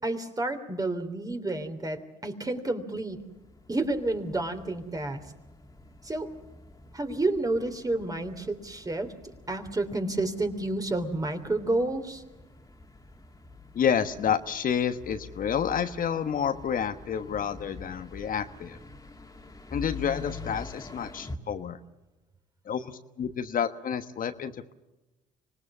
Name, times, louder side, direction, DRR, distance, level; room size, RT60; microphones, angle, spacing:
voice 1, 0.0-3.2 3.7-5.2 6.0-6.3 6.9-9.1 9.5-12.2, right 2 dB, 20° right, 7 dB, 3.4 m, -30 dB
sound 1, 3.1-21.4, left 3 dB, 20° left, 2.7 m, -46 dB
voice 2, 13.7-18.8 19.7-21.8 22.6-24.7, left 8 dB, 50° left, 9 dB, 1.3 m, -29 dB
25.5 x 19.5 x 7.2 m, 1.0 s
hypercardioid pair, 60°, 18 cm